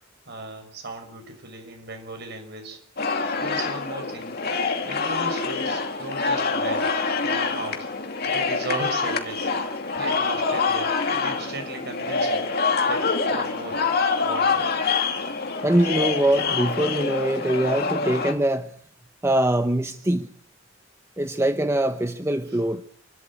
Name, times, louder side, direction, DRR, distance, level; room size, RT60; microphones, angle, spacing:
voice 1, 0.3-2.8 3.4-4.4 4.8-6.9 7.2-7.9 8.3-9.5 9.9-12.5 12.9-13.8 14.2-14.7 15.2-15.3 22.4-22.6, right 2 dB, 55° right, 5 dB, 6.2 m, -36 dB
sound 1, 3.0-18.3, left 4 dB, 50° left, 2.7 m, -26 dB
voice 2, 15.6-18.7 19.2-20.3 21.2-22.8, right 1 dB, 15° right, 8 dB, 0.9 m, -23 dB
28.5 x 13.5 x 8.7 m, 0.62 s
head